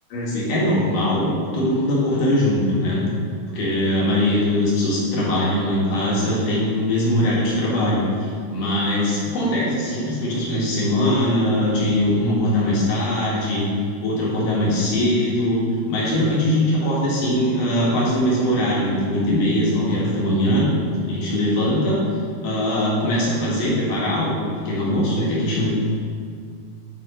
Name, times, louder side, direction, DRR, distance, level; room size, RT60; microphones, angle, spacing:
voice 1, 0.1-1.3 1.5-3.0 3.5-13.7 14.0-15.6 15.9-20.7 21.0-22.0 22.4-25.7, left 1 dB, 55° left, -6 dB, 3.0 m, -21 dB
12.0 x 4.3 x 5.2 m, 2.1 s
omnidirectional pair, 5.3 m